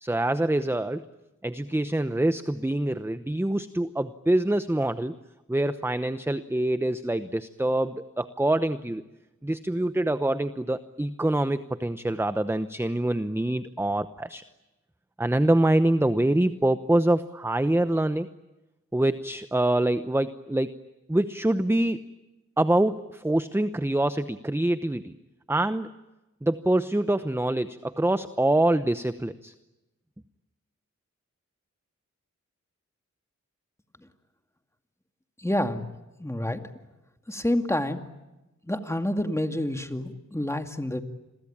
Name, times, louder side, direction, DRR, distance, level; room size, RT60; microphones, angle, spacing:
voice 1, 0.0-1.0 1.4-5.1 5.5-9.0 9.4-14.4 15.2-18.3 18.9-20.7 21.1-22.0 22.6-25.2 25.5-25.9 26.4-29.5, right 1 dB, 10° right, 12 dB, 0.9 m, -25 dB
voice 2, 35.4-35.8 36.2-36.6 37.3-38.0 38.6-41.0, left 1 dB, 10° left, 6 dB, 2.3 m, -28 dB
29.5 x 22.5 x 8.8 m, 1.0 s
wide cardioid pair, 80°, 29 cm